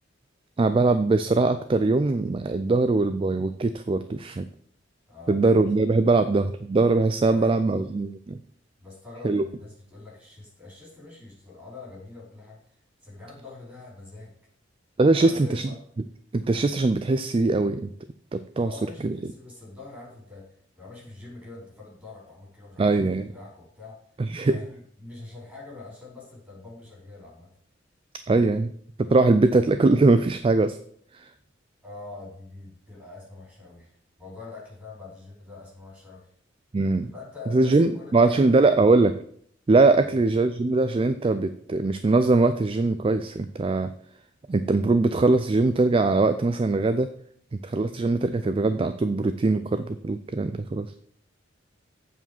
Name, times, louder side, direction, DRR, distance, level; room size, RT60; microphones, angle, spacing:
voice 1, 0.6-4.5 5.3-8.4 9.2-9.4 15.0-15.7 16.3-17.9 18.3-18.7 19.0-19.1 22.8-23.3 24.2-24.6 28.3-28.7 29.0-30.8 31.1-31.3 36.7-37.1 37.5-39.1 39.7-43.9 44.5-47.1 47.6-50.9, right 3 dB, 30° right, 11 dB, 0.3 m, -21 dB
voice 2, 5.1-5.4 5.8-6.3 7.2-7.8 8.8-12.8 13.0-14.3 15.1-15.8 18.5-20.5 20.8-24.0 24.4-27.5 31.8-36.3 37.0-38.6 40.0-40.2, left 3 dB, 10° right, -4 dB, 4.5 m, -44 dB
8.2 x 4.9 x 7.0 m, 0.63 s
head